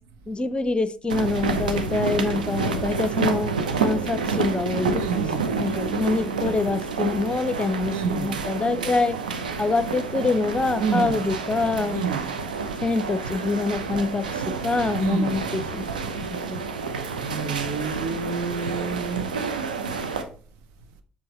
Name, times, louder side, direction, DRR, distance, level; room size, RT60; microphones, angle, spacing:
voice 1, 0.3-5.0 5.4-9.2 9.6-12.0 12.8-15.9 16.3-16.6, left 3 dB, 25° left, 0.8 m, -25 dB
sound 1, 1.1-20.2, right 4 dB, 85° right, 0.7 m, -29 dB
voice 2, 4.9-5.7 7.9-8.5 10.8-11.2 11.9-12.3 15.0-15.5 17.2-19.4, right 6 dB, 70° right, 1.1 m, -29 dB
7.5 x 5.7 x 3.2 m
figure-of-eight pair, 55°, 4 cm